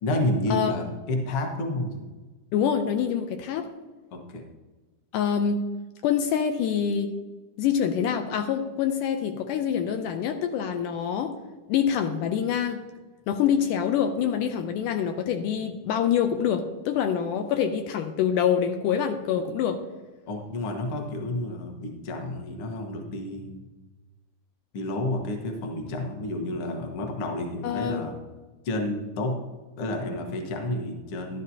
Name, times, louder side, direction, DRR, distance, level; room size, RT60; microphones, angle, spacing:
voice 1, 0.0-2.0 4.1-4.4 20.3-23.7 24.7-28.2 28.6-29.4 29.8-31.4, left 1 dB, 55° left, 3 dB, 1.7 m, -30 dB
voice 2, 2.5-3.7 5.1-5.6 6.0-7.1 7.6-11.3 11.7-12.8 13.3-19.8 27.6-28.1, left 8 dB, 80° left, 6 dB, 2.1 m, -25 dB
12.0 x 11.5 x 2.8 m, 1.2 s
omnidirectional pair, 3.8 m